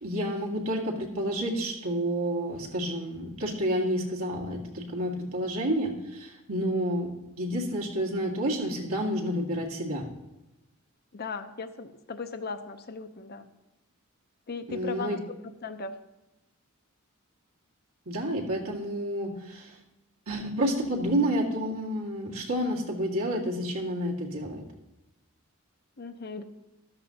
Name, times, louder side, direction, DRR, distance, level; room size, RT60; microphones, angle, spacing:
voice 1, 0.0-10.1 14.7-15.2 18.1-19.7 20.3-24.6, equal, 75° right, -2 dB, 2.1 m, -30 dB
voice 2, 11.1-13.5 14.5-15.2 15.6-15.9 26.0-26.4, left 4 dB, 50° left, 8 dB, 0.8 m, -37 dB
13.0 x 13.0 x 2.9 m, 0.97 s
head